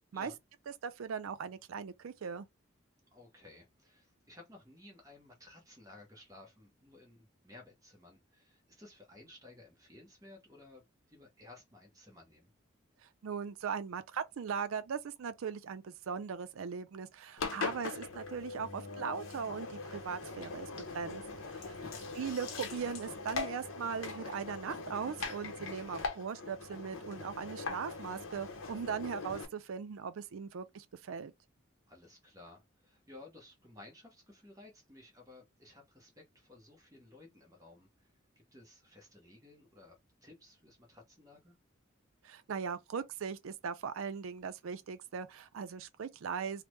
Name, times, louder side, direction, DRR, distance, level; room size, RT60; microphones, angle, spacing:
voice 1, 0.8-2.5 13.2-20.7 20.9-21.2 21.5-21.8 22.2-31.3 42.2-46.6, right 6 dB, 90° right, 0.4 m, -39 dB
voice 2, 3.1-12.5 21.8-22.0 31.9-38.1 38.5-41.5, left 2 dB, 15° right, 0.8 m, -56 dB
Engine, 17.4-29.5, left 4 dB, 80° left, 0.7 m, -41 dB
3.3 x 2.1 x 3.0 m
head